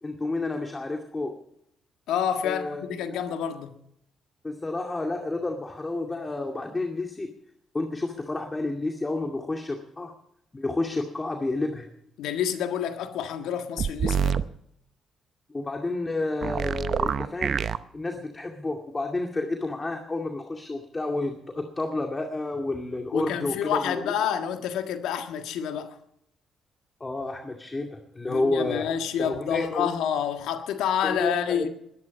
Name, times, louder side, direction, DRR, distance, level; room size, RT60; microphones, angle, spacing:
voice 1, 0.0-1.3 2.4-3.2 4.4-7.3 7.7-10.1 10.5-11.9 15.5-17.6 17.9-24.1 27.0-28.9 29.2-29.9 31.0-31.7, left 2 dB, 25° left, 2.3 m, -30 dB
voice 2, 2.1-3.7 12.2-14.4 23.1-25.9 28.3-31.7, left 8 dB, 75° left, 1.6 m, -28 dB
sound 1, 13.8-14.4 16.4-17.8, right 7 dB, 60° right, 0.7 m, -26 dB
21.0 x 11.0 x 5.4 m
hypercardioid pair, 50°, 0 cm